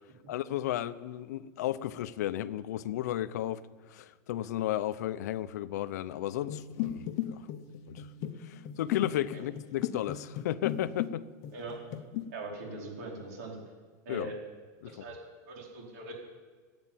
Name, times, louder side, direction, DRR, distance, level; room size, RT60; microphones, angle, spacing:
voice 1, 0.3-3.6 3.9-7.5 7.9-8.1 8.4-11.3 14.1-14.3 14.8-14.9, left 13 dB, 70° left, 15 dB, 0.6 m, -34 dB
sound 1, 6.4-11.1 11.4-12.2, left 11 dB, 35° left, 0.9 m, -36 dB
voice 2, 12.3-13.6 14.0-14.4 14.8-15.2 15.5-16.1, right 2 dB, 60° right, -1 dB, 4.5 m, -41 dB
15.0 x 8.8 x 9.0 m, 1.5 s
supercardioid pair, 180°, 9 cm